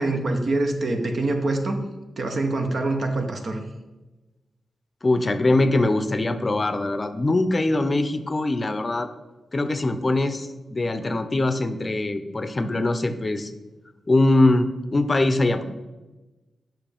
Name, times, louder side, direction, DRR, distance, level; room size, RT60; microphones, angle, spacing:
voice 1, 0.0-1.8 2.2-3.6, right 2 dB, 55° right, 4 dB, 1.0 m, -25 dB
voice 2, 5.0-9.1 9.5-13.5 14.1-15.6, left 2 dB, 35° left, 9 dB, 0.6 m, -22 dB
7.4 x 5.8 x 3.5 m, 1.1 s
cardioid pair, 70°, 0 cm